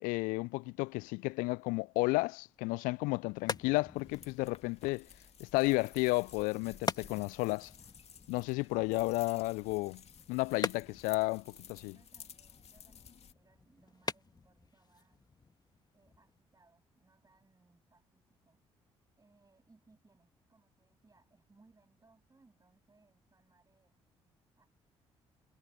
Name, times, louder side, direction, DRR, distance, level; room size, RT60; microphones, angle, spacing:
voice 1, 0.0-5.1 5.4-7.7 8.3-10.0 10.3-11.9, left 25 dB, 70° left, 0.4 m, -32 dB
sound 1, 2.9-16.4, left 4 dB, 30° left, 2.1 m, -45 dB
sound 2, 3.9-13.3, left 7 dB, 45° left, 2.7 m, -55 dB
voice 2, 11.8-15.2 15.9-18.6 19.2-24.0 24.6-24.7, right 3 dB, 25° right, 7.9 m, -68 dB
figure-of-eight pair, 45°, 14 cm